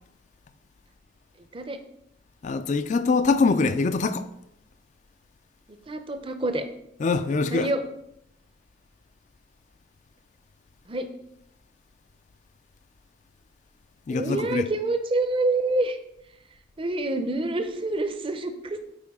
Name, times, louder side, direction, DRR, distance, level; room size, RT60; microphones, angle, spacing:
voice 1, 2.4-4.3 7.0-7.7 14.1-14.6, left 4 dB, 40° left, 0.3 m, -23 dB
voice 2, 5.9-6.6 7.5-7.8 10.9-11.1 14.1-16.0 16.8-18.8, right 2 dB, 30° right, 0.6 m, -27 dB
8.6 x 4.5 x 3.6 m
head